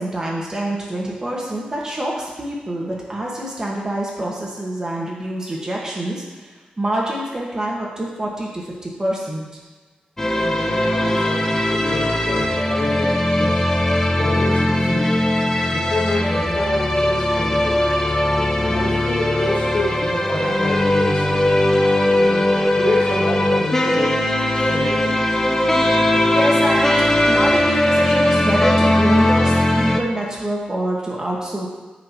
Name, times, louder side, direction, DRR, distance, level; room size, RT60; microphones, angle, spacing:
voice 1, 0.0-6.5 6.8-9.4 25.6-25.9 26.3-31.7, right 1 dB, 25° right, -3 dB, 1.4 m, -26 dB
sound 1, 10.2-30.0, left 1 dB, 15° left, 0.5 m, -19 dB
voice 2, 10.3-13.7 14.2-15.2 15.7-17.8 18.6-21.5 22.2-24.2 24.5-25.2, left 2 dB, 70° left, -2 dB, 1.2 m, -28 dB
9.1 x 4.4 x 2.9 m, 1.3 s
wide cardioid pair, 110°, 3 cm